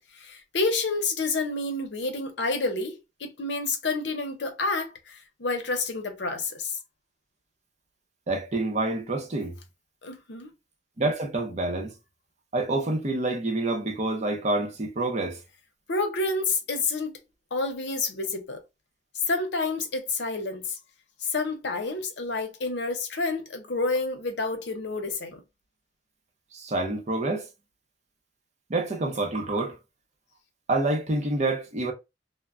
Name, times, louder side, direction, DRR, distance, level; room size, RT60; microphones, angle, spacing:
voice 1, 0.0-6.8 10.0-10.5 15.9-17.2 17.5-18.6 19.3-20.8 21.2-25.4, left 3 dB, 75° left, 0.7 m, -29 dB
voice 2, 8.3-9.5 11.0-11.9 12.5-15.4 26.5-27.5 28.7-29.8 30.7-31.9, right 2 dB, 40° right, 0.6 m, -27 dB
2.1 x 2.1 x 3.5 m
head